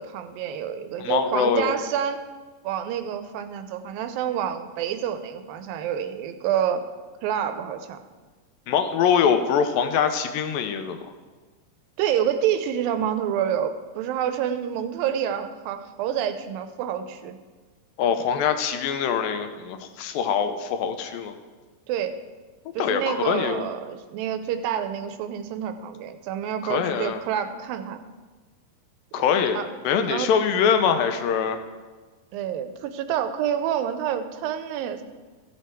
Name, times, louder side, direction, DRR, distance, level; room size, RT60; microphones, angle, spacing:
voice 1, 0.0-2.2 2.6-6.8 7.2-8.0 12.0-17.4 21.9-22.2 22.7-28.0 29.2-29.3 29.5-29.7 30.1-30.3 32.3-35.0, right 9 dB, 90° right, 9 dB, 2.4 m, -28 dB
voice 2, 1.0-1.7 8.7-11.0 18.0-21.3 22.8-23.7 26.6-27.2 29.1-31.6, left 7 dB, 85° left, 8 dB, 2.5 m, -23 dB
15.0 x 6.4 x 4.5 m, 1.4 s
omnidirectional pair, 4.1 m